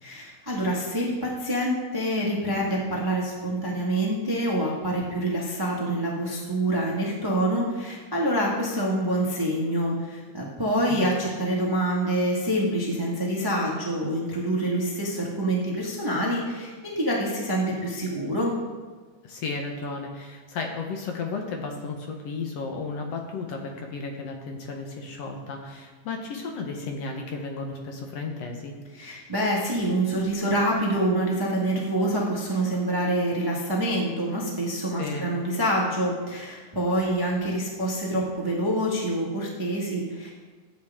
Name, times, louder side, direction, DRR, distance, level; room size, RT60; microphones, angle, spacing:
voice 1, 0.0-18.5 28.9-40.3, right 1 dB, 15° right, -4 dB, 0.7 m, -26 dB
voice 2, 19.2-28.7 35.0-35.3, left 4 dB, 65° left, 2 dB, 2.0 m, -34 dB
13.0 x 8.1 x 3.6 m, 1.5 s
omnidirectional pair, 3.3 m